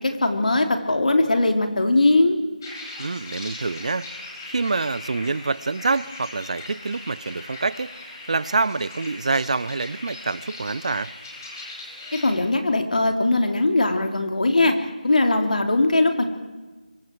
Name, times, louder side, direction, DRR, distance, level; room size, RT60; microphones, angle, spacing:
voice 1, 0.0-2.4 12.1-14.7 15.0-16.3, left 2 dB, 65° left, 4 dB, 3.4 m, -20 dB
sound 1, 2.6-12.3, left 2 dB, 25° left, 5.5 m, -39 dB
voice 2, 3.0-4.1 4.4-8.0 8.3-11.1, right 3 dB, 50° right, 20 dB, 0.6 m, -26 dB
27.5 x 24.0 x 4.7 m, 1.2 s
figure-of-eight pair, 165°, 5 cm